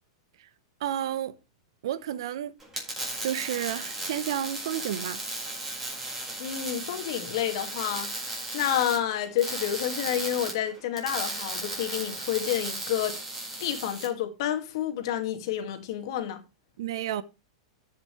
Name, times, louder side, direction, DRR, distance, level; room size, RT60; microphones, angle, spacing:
voice 1, 0.8-1.4 1.8-2.5 3.2-5.2 16.8-17.2, right 11 dB, 70° right, 0.9 m, -31 dB
sound 1, 2.6-14.1, right 2 dB, 10° right, 4.8 m, -35 dB
voice 2, 6.4-13.2 13.6-16.4, left 10 dB, 65° left, 2.1 m, -29 dB
14.5 x 5.9 x 3.2 m
hypercardioid pair, 120°, 3 cm